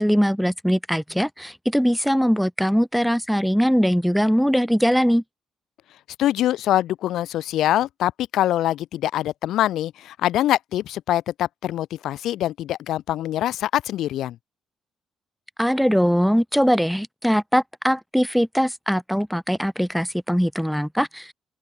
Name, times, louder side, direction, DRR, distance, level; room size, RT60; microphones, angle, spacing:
voice 1, 0.0-5.2 15.6-21.3, equal, ahead, 0.6 m, -21 dB
voice 2, 6.2-14.4, left 13 dB, 80° left, 3.0 m, -24 dB
open air
cardioid pair, 90°, 0 cm